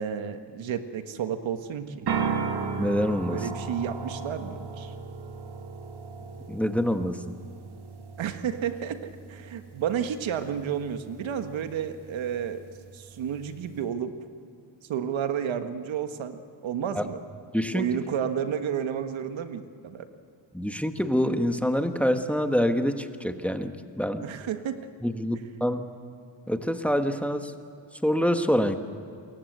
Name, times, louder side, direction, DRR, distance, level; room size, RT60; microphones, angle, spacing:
voice 1, 0.0-2.1 3.3-4.9 8.2-12.6 12.9-14.1 14.9-17.2 17.7-20.1 24.2-24.9, right 8 dB, 85° right, 8 dB, 1.7 m, -31 dB
sound 1, 2.1-13.8, right 5 dB, 60° right, 2.3 m, -36 dB
voice 2, 2.8-3.4 6.5-7.2 16.9-17.1 17.5-17.9 20.5-24.2 25.0-25.8 26.5-27.5 28.0-28.8, equal, 5° left, 7 dB, 1.5 m, -26 dB
28.5 x 22.5 x 8.1 m, 2.4 s
cardioid pair, 95°, 45 cm